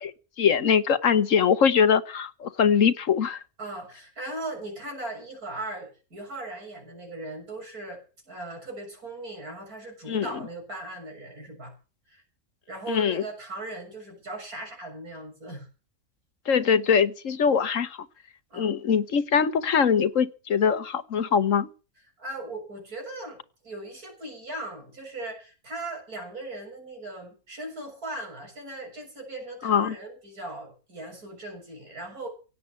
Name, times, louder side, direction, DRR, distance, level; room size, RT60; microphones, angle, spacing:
voice 1, 0.0-3.4 10.1-10.3 12.9-13.2 16.5-18.0 18.5-21.7 29.6-29.9, left 7 dB, 60° left, 1.3 m, -22 dB
voice 2, 3.6-11.7 12.1-12.2 12.7-15.7 18.5-18.7 22.2-32.3, right 2 dB, 80° right, 7.5 m, -38 dB
17.5 x 8.6 x 8.3 m
omnidirectional pair, 1.6 m